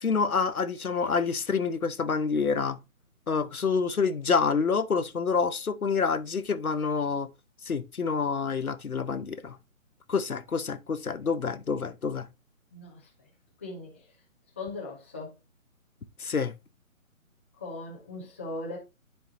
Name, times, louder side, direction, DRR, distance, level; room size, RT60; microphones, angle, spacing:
voice 1, 0.0-2.8 3.3-7.3 7.6-9.6 10.1-12.3 16.2-16.5, left 5 dB, 85° left, 1.0 m, -27 dB
voice 2, 13.6-14.0 14.6-15.3 17.6-18.8, left 2 dB, 10° left, 0.6 m, -38 dB
10.5 x 4.6 x 2.7 m
figure-of-eight pair, 150°, 42 cm